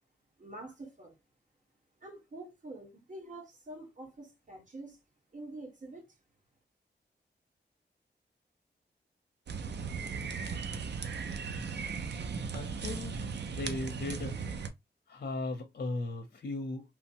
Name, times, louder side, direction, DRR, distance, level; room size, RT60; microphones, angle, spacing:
voice 1, 0.4-1.1 2.0-5.0 5.3-6.1, right 2 dB, 45° right, 1.3 m, -46 dB
sound 1, 9.5-14.7, right 5 dB, 75° right, 0.5 m, -37 dB
voice 2, 12.5-13.2 13.5-14.4 15.1-16.8, left 2 dB, 60° left, 0.6 m, -37 dB
3.0 x 2.1 x 2.8 m
wide cardioid pair, 90°, 18 cm